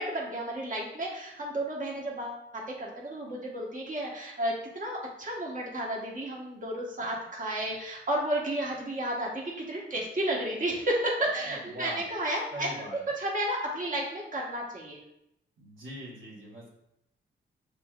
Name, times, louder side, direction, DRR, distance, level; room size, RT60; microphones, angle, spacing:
voice 1, 0.0-12.7 13.2-15.0, right 1 dB, 40° right, -3 dB, 1.4 m, -32 dB
voice 2, 11.5-12.0 12.5-13.1 15.6-16.7, equal, 75° right, -8 dB, 1.6 m, -42 dB
6.6 x 3.1 x 2.5 m, 0.81 s
supercardioid pair, 50°, 21 cm